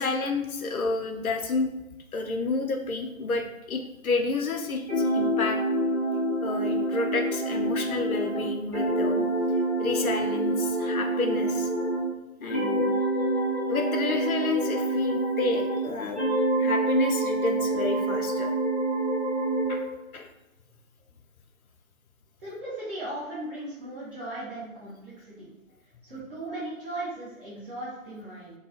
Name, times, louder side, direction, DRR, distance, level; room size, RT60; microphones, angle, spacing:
voice 1, 0.0-1.7 2.1-4.8 5.1-5.6 6.4-9.3 9.8-11.7 12.4-12.8 13.7-18.5 19.7-19.8 20.1-20.3, left 3 dB, 85° left, 4 dB, 0.6 m, -30 dB
sound 1, 4.9-12.1 12.5-15.8 16.1-19.8, right 1 dB, 10° right, 0.5 m, -27 dB
voice 2, 22.4-25.5 26.0-28.5, right 1 dB, 40° right, -9 dB, 0.9 m, -37 dB
3.1 x 2.3 x 2.7 m, 0.93 s
figure-of-eight pair, 140°, 42 cm